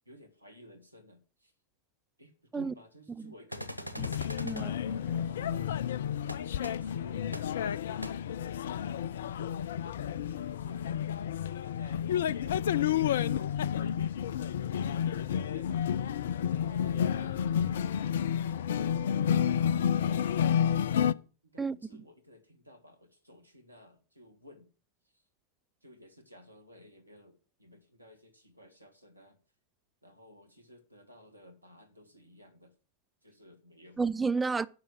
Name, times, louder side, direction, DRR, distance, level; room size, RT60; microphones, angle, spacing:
voice 1, 0.1-1.5 2.2-4.1 5.3-5.8 6.4-9.2 10.0-12.0 12.3-14.2 14.9-15.7 16.7-18.0 18.8-19.6 20.1-24.7 25.1-25.2 25.8-29.4 30.0-32.7 33.2-34.0, equal, 85° right, 1.9 m, -54 dB
sound 1, 3.5-4.6 6.3-6.4 6.6-6.7 7.3-7.4 8.0-8.1, equal, 85° left, 1.3 m, -40 dB
sound 2, 4.0-21.1, left 9 dB, 60° left, 0.4 m, -30 dB
voice 2, 4.4-5.3 21.6-21.8 34.0-34.7, right 4 dB, 10° right, 0.6 m, -32 dB
9.6 x 6.2 x 7.6 m
figure-of-eight pair, 90°, 0 cm